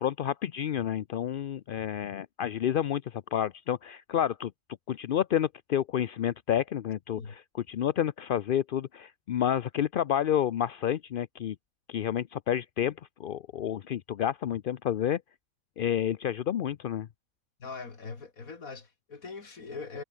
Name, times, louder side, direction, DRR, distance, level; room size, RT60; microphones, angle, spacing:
voice 1, 0.0-4.5 4.9-11.6 11.9-12.9 13.2-15.2 15.8-17.1, left 10 dB, 60° left, 0.5 m, -29 dB
voice 2, 17.6-20.0, left 4 dB, 75° left, 2.9 m, -41 dB
omnidirectional pair, 1.5 m